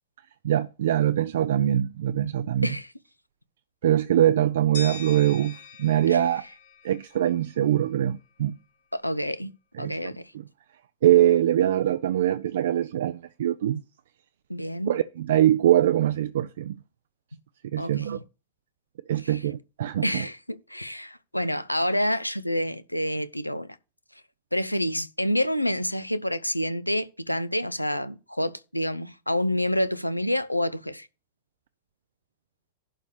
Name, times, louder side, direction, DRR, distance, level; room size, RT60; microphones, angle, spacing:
voice 1, 0.4-2.7 3.8-6.4 6.8-8.6 9.8-10.0 11.0-13.8 14.9-16.8 17.7-18.2 19.1-20.2, right 12 dB, 60° right, 0.4 m, -23 dB
sound 1, 4.7-7.7, left 4 dB, 55° left, 2.9 m, -42 dB
voice 2, 8.9-9.5 9.8-10.2 14.5-14.9 17.8-18.1 19.2-19.4 20.0-23.7 24.5-31.1, equal, 90° left, 0.6 m, -28 dB
11.5 x 4.1 x 6.6 m
figure-of-eight pair, 90°, 0 cm